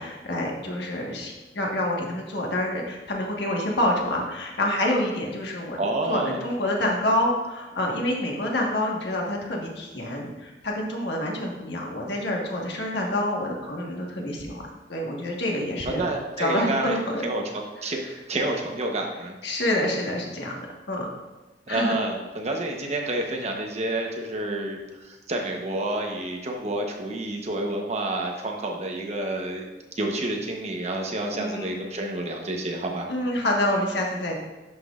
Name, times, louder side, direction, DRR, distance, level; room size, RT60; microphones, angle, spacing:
voice 1, 0.0-5.8 6.1-14.6 14.9-16.1 16.4-17.2 19.4-20.6 20.9-21.1 21.7-22.0 31.3-31.7 33.1-34.3, left 1 dB, 70° left, -1 dB, 1.5 m, -27 dB
voice 2, 5.8-6.4 15.8-17.0 17.2-18.0 18.3-19.3 21.7-29.7 30.0-33.1, right 2 dB, 40° right, 1 dB, 1.0 m, -29 dB
11.0 x 6.1 x 2.5 m, 1.1 s
head